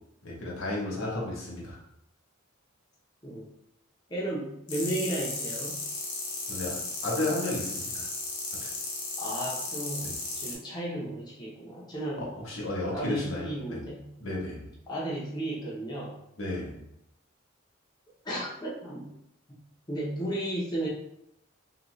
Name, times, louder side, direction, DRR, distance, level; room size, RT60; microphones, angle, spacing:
voice 1, 0.2-1.8 6.5-8.1 8.6-8.7 10.0-10.1 12.2-13.8 14.2-14.7 16.4-16.8, left 2 dB, 90° left, -3 dB, 1.0 m, -33 dB
voice 2, 1.0-1.3 3.2-3.5 4.1-5.8 9.2-12.3 12.9-14.1 14.9-16.2 18.2-19.1 19.9-20.9, right 1 dB, 20° left, -6 dB, 0.7 m, -34 dB
sound 1, 4.7-10.5, left 3 dB, 60° left, 0.8 m, -35 dB
2.9 x 2.7 x 3.0 m, 0.79 s
head